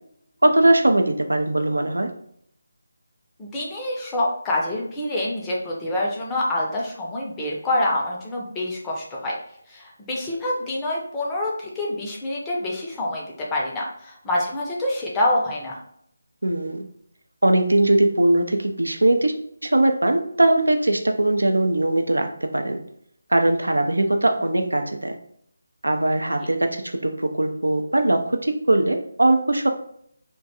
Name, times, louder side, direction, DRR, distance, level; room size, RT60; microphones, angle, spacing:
voice 1, 0.4-2.1 16.4-16.9 17.4-19.3 19.6-22.8 23.3-25.2 25.8-29.7, right 1 dB, 80° right, 6 dB, 0.4 m, -20 dB
voice 2, 3.4-9.3 9.7-15.8, left 1 dB, 10° left, -3 dB, 0.5 m, -26 dB
2.5 x 2.2 x 2.7 m, 0.68 s
figure-of-eight pair, 155°, 0 cm